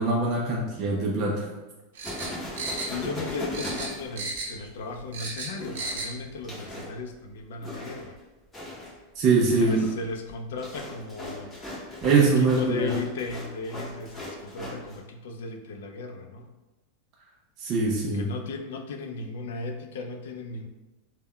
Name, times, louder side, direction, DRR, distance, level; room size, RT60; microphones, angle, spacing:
voice 1, 0.0-1.5 9.2-9.9 12.0-13.0 17.6-18.3, right 3 dB, 30° right, -2 dB, 0.3 m, -23 dB
sound 1, 1.9-3.3 3.5-4.7 4.9-6.1 6.4-6.5, right 3 dB, 85° right, 0.5 m, -34 dB
sound 2, 2.0-4.7 5.6-7.0 7.6-8.2 8.5-9.0 9.4-15.0, left 1 dB, 10° left, 0.6 m, -38 dB
voice 2, 2.8-8.2 9.4-11.5 12.0-16.5 18.1-20.7, left 3 dB, 75° left, 5 dB, 0.3 m, -36 dB
2.2 x 2.1 x 3.5 m, 1.1 s
supercardioid pair, 175°, 0 cm